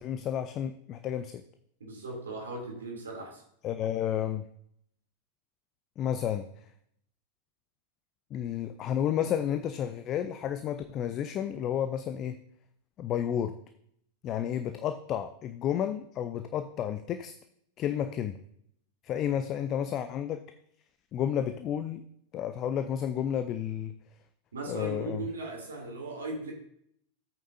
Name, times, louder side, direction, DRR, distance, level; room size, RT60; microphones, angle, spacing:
voice 1, 0.0-1.4 3.6-4.4 6.0-6.5 8.3-12.4 13.0-13.6 14.2-17.3 17.8-18.4 19.0-20.4 21.1-22.0 22.3-24.0 24.7-25.2, left 9 dB, 35° left, 10 dB, 0.5 m, -31 dB
voice 2, 1.8-3.4 24.5-26.5, right 2 dB, 70° right, 1 dB, 2.9 m, -38 dB
13.5 x 8.6 x 2.7 m, 0.70 s
figure-of-eight pair, 90°, 0 cm